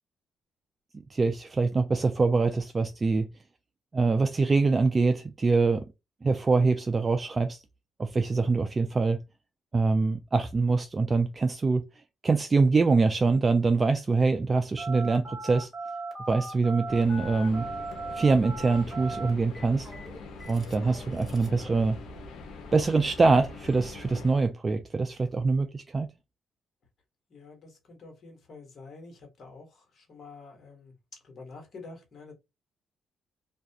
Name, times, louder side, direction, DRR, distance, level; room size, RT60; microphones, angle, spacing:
voice 1, 1.1-3.3 3.9-5.9 6.2-7.6 8.0-9.2 9.7-11.8 12.2-15.7 16.3-17.6 18.1-19.9 20.5-22.0 22.7-26.1, right 3 dB, 30° right, 0.3 m, -24 dB
Telephone, 14.8-21.6, right 3 dB, ahead, 1.3 m, -38 dB
sound 1, 16.9-24.4, left 3 dB, 80° left, 0.6 m, -43 dB
voice 2, 27.3-30.9 31.2-32.3, left 3 dB, 50° left, 1.1 m, -48 dB
2.3 x 2.2 x 2.7 m
cardioid pair, 90°, 0 cm